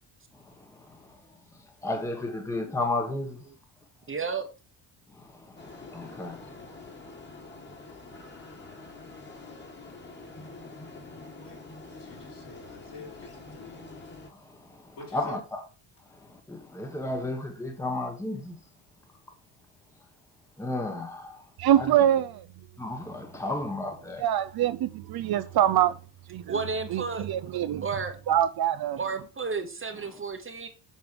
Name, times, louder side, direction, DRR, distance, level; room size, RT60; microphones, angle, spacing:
voice 1, 0.3-1.2 1.8-3.4 5.1-6.5 14.3-15.6 16.1-18.6 20.6-21.5 21.8-21.9 22.8-24.2, left 2 dB, 5° left, 1.2 m, -34 dB
voice 2, 4.1-4.5 26.5-27.3 27.8-28.2 29.0-30.7, right 5 dB, 25° right, 1.1 m, -32 dB
sound 1, 5.6-14.3, left 3 dB, 25° left, 1.9 m, -46 dB
voice 3, 11.4-13.8 14.9-15.4, left 3 dB, 60° left, 4.4 m, -47 dB
voice 4, 21.6-22.4 24.2-26.0 26.3-26.6 26.9-27.9 28.3-29.0, right 11 dB, 55° right, 0.6 m, -24 dB
7.4 x 5.2 x 4.6 m
cardioid pair, 120°, 47 cm